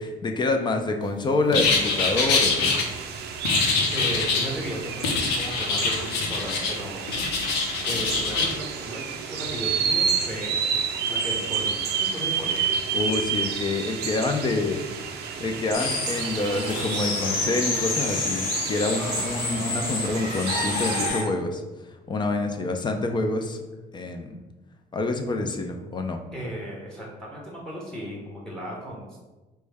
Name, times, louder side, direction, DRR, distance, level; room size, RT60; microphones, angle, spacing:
voice 1, 0.0-2.8 12.9-14.8 15.4-21.6 22.1-23.6 23.9-24.4 24.9-26.2, left 3 dB, 25° left, 5 dB, 0.4 m, -27 dB
sound 1, 1.5-2.8 3.4-4.5 5.0-6.8 7.1-8.5, left 4 dB, 90° left, 0.6 m, -24 dB
sound 2, 1.7-21.1, right 6 dB, 75° right, 0.4 m, -30 dB
voice 2, 3.9-7.1 7.9-10.6 11.1-12.6 26.3-29.2, equal, 5° left, -3 dB, 0.9 m, -35 dB
sound 3, 15.7-21.2, left 3 dB, 55° left, 1.0 m, -29 dB
4.5 x 2.1 x 3.3 m, 1.1 s
cardioid pair, 110°, 17 cm